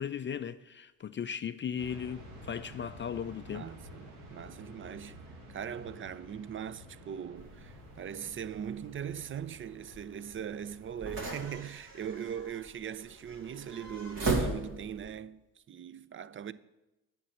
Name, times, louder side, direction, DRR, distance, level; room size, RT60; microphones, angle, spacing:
voice 1, 0.0-3.7, left 8 dB, 30° left, 0.4 m, -37 dB
sound 1, 1.8-11.5, equal, 85° right, 1.5 m, -51 dB
voice 2, 3.5-15.4 15.7-16.5, right 8 dB, 30° right, 0.4 m, -40 dB
sound 2, 7.4-15.1, right 3 dB, 55° right, 2.2 m, -38 dB
8.4 x 5.8 x 7.2 m
hypercardioid pair, 45°, 42 cm